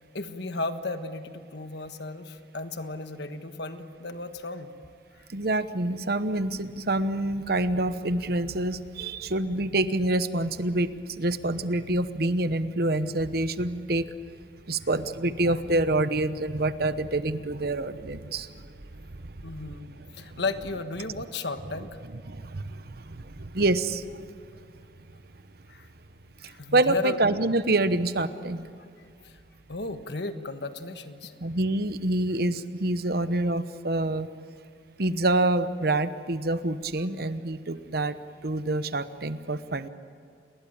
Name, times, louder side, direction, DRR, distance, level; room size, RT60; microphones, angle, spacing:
voice 1, 0.1-4.7 19.4-21.9 25.7-25.9 26.4-27.2 28.8-28.9 29.2-29.3 29.7-31.3 37.0-37.1, left 3 dB, 60° left, 8 dB, 1.4 m, -34 dB
voice 2, 5.3-14.1 14.7-19.1 20.0-20.4 22.1-24.2 26.4-28.6 31.4-34.3 35.0-38.1 38.4-39.9, right 2 dB, 55° right, 12 dB, 1.0 m, -27 dB
29.5 x 20.5 x 8.8 m, 2.2 s
head